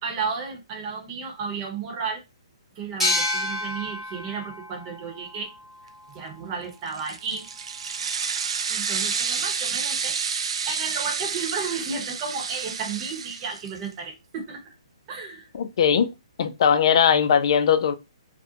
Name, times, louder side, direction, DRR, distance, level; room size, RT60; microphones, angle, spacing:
voice 1, 0.0-2.2 2.7-5.5 6.1-7.5 8.7-10.2 10.7-14.7 15.1-15.5, right 5 dB, 30° right, 0.9 m, -33 dB
sound 1, 3.0-6.4, left 2 dB, 5° right, 1.0 m, -30 dB
sound 2, 6.9-13.9, right 6 dB, 65° right, 0.3 m, -29 dB
voice 2, 15.5-16.1 16.4-17.9, left 8 dB, 55° left, 0.4 m, -19 dB
2.4 x 2.1 x 2.8 m
hypercardioid pair, 140°, 3 cm